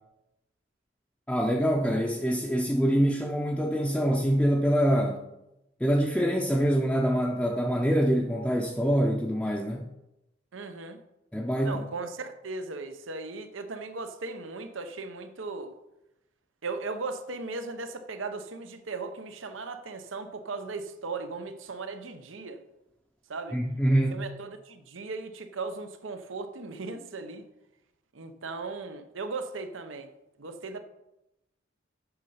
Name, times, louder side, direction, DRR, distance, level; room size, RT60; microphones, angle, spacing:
voice 1, 1.3-5.3 5.8-9.8 11.3-11.8 23.5-24.2, equal, 5° left, -1 dB, 0.6 m, -25 dB
voice 2, 10.5-11.0 11.6-15.7 16.6-22.6 23.3-23.6 24.1-27.4 28.1-30.1 30.4-30.8, right 3 dB, 85° right, 8 dB, 0.8 m, -37 dB
8.1 x 6.5 x 5.7 m, 0.91 s
head